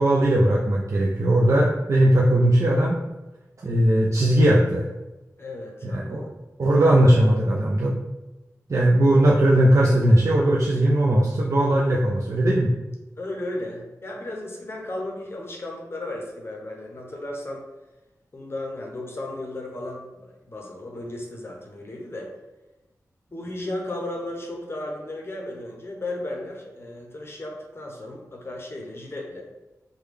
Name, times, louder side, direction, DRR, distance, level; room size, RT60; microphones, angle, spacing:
voice 1, 0.0-3.0 3.6-4.8 5.8-6.2 6.6-7.9 8.7-12.7, right 1 dB, 55° right, -3 dB, 0.4 m, -19 dB
voice 2, 5.4-6.3 13.2-17.6 18.3-22.3 23.3-29.4, left 1 dB, 40° left, -1 dB, 0.6 m, -35 dB
3.3 x 2.2 x 3.2 m, 1.0 s
cardioid pair, 55°, 6 cm